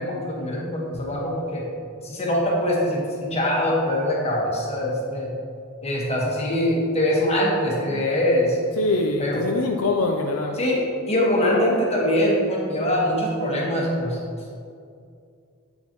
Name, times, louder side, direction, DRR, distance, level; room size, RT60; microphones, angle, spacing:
voice 1, 0.0-1.7 2.0-5.3 5.8-8.6 9.2-9.4 10.6-14.2, left 1 dB, 30° left, -3 dB, 1.5 m, -23 dB
voice 2, 8.8-10.6, left 2 dB, 85° left, 2 dB, 0.5 m, -23 dB
8.1 x 7.2 x 3.1 m, 2.3 s
head